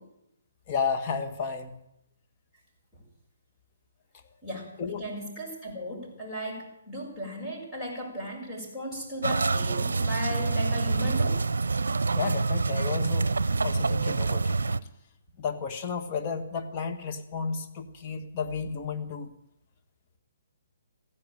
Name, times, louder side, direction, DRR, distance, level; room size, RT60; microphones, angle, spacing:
voice 1, 0.7-1.7 4.8-5.1 12.1-13.3 13.6-14.6 15.4-19.3, left 5 dB, 30° left, 5 dB, 1.7 m, -32 dB
voice 2, 4.4-11.4, equal, 5° left, -5 dB, 6.8 m, -36 dB
sound 1, 9.2-14.8, right 3 dB, 80° right, 0.6 m, -26 dB
15.0 x 11.0 x 8.9 m, 0.82 s
hypercardioid pair, 145°, 0 cm